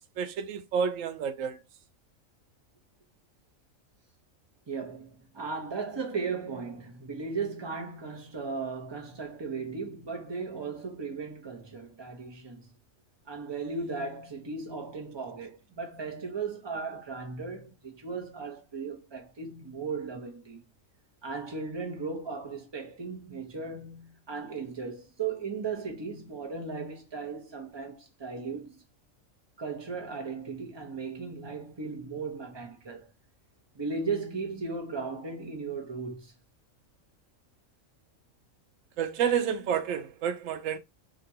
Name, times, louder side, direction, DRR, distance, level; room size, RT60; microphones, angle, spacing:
voice 1, 0.2-1.6 39.0-40.8, right 7 dB, 80° right, 1.0 m, -29 dB
voice 2, 4.7-12.7 13.3-20.6 21.2-28.8 29.6-33.1 33.7-36.3, right 4 dB, 25° right, 0.6 m, -36 dB
2.9 x 2.5 x 2.7 m
omnidirectional pair, 1.4 m